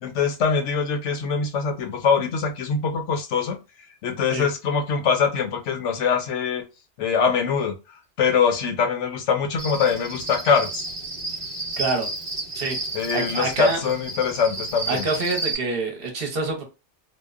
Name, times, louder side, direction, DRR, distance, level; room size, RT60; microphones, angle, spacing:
voice 1, 0.0-3.6 4.0-6.6 7.0-7.7 8.2-10.8 12.9-15.1, left 6 dB, 80° left, 0.9 m, -23 dB
Cricket, 9.6-15.5, right 2 dB, 15° right, 0.7 m, -32 dB
voice 2, 11.8-12.1 12.5-12.8 13.1-13.8 14.9-16.6, right 3 dB, 60° right, 0.8 m, -26 dB
2.8 x 2.0 x 2.3 m
omnidirectional pair, 1.2 m